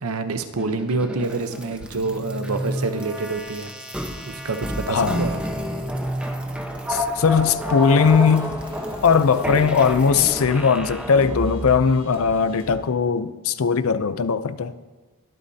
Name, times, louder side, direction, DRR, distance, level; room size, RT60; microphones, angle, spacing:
voice 1, 0.0-3.7 4.2-5.4, right 3 dB, 80° right, 0.8 m, -27 dB
sound 1, 0.6-11.8, equal, 5° right, 1.0 m, -30 dB
voice 2, 4.9-5.2 6.9-8.6 9.0-14.7, left 5 dB, 70° left, 0.5 m, -19 dB
sound 2, 7.2-10.1, left 3 dB, 35° left, 1.4 m, -46 dB
sound 3, 7.6-12.8, equal, 25° right, 1.7 m, -43 dB
21.5 x 8.4 x 2.8 m
head